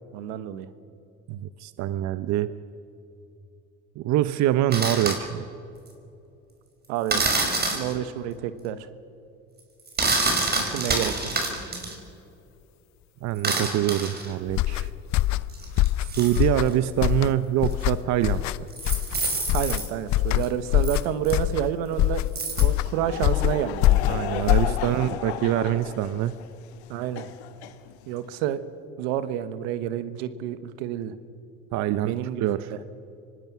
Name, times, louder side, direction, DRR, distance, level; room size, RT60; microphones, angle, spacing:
voice 1, 0.1-0.7 6.9-7.3 7.7-8.9 10.6-11.1 19.5-22.3 22.6-24.0 24.6-24.8 26.9-27.3 28.1-28.6 29.0-31.1 32.0-32.8, right 11 dB, 80° right, 13 dB, 1.3 m, -29 dB
voice 2, 1.3-2.5 4.0-5.5 13.2-14.9 16.0-18.7 24.1-26.3 31.7-32.1 32.4-32.7, right 12 dB, 60° right, 14 dB, 0.8 m, -25 dB
sound 1, 4.7-5.2 7.1-7.9 9.9-12.0 13.4-14.3 15.5-16.7 17.7-17.8 18.7-19.9 20.4-20.5 20.8-21.0 21.2-21.3 22.4-22.7, right 3 dB, 30° right, 5.3 m, -27 dB
sound 2, 14.5-25.1, left 15 dB, 60° left, 0.7 m, -24 dB
Laughter / Crowd, 22.5-28.3, left 10 dB, 90° left, 1.3 m, -35 dB
25.5 x 19.0 x 6.1 m, 2.7 s
supercardioid pair, 80°, 32 cm